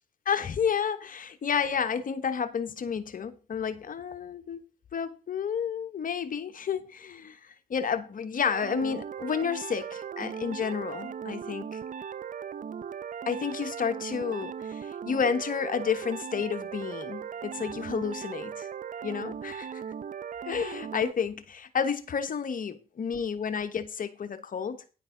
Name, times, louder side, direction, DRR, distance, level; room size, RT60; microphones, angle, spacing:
voice 1, 0.2-4.6 4.9-11.8 13.3-18.7 19.0-19.8 20.4-24.8, left 6 dB, 50° left, 1.2 m, -31 dB
sound 1, 8.5-21.1, right 7 dB, 45° right, 0.7 m, -38 dB
10.0 x 8.6 x 3.9 m
hypercardioid pair, 45°, 18 cm